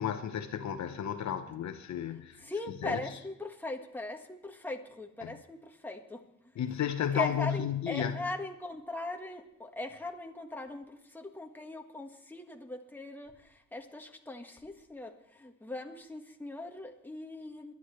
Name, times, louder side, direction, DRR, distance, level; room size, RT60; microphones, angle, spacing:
voice 1, 0.0-2.4 2.8-3.0 5.2-5.3 6.6-8.1, left 9 dB, 65° left, 7 dB, 1.1 m, -33 dB
voice 2, 2.4-6.3 7.1-17.7, left 2 dB, 5° left, 3 dB, 1.6 m, -40 dB
22.0 x 11.0 x 3.2 m, 0.84 s
cardioid pair, 90°, 30 cm